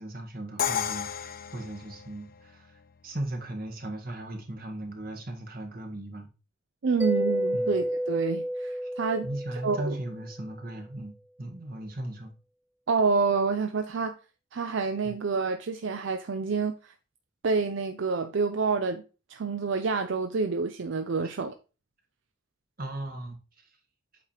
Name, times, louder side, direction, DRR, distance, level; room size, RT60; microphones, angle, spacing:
voice 1, 0.0-6.3 7.5-7.8 9.2-12.3 15.0-15.1 21.2-21.4 22.8-23.7, right 1 dB, 45° right, 1.5 m, -37 dB
Crash cymbal, 0.6-2.5, left 8 dB, 45° left, 0.4 m, -32 dB
voice 2, 6.8-9.3 9.6-9.9 12.9-14.2 14.5-16.9 17.4-19.0 19.3-21.5, right 4 dB, 70° right, 0.5 m, -28 dB
Mallet percussion, 7.0-10.5, equal, 10° right, 0.5 m, -31 dB
8.0 x 2.9 x 4.8 m
head